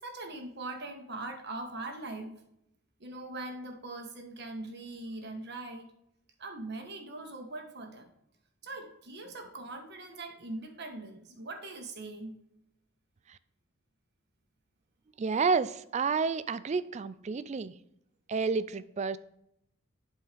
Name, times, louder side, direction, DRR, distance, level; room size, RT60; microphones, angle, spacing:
voice 1, 0.0-2.3 3.0-5.9 6.4-8.1 8.6-12.4, right 2 dB, 50° right, 4 dB, 1.3 m, -41 dB
voice 2, 15.2-17.7 18.3-19.2, right 5 dB, 30° right, 15 dB, 0.3 m, -30 dB
11.0 x 4.6 x 3.4 m, 0.77 s
head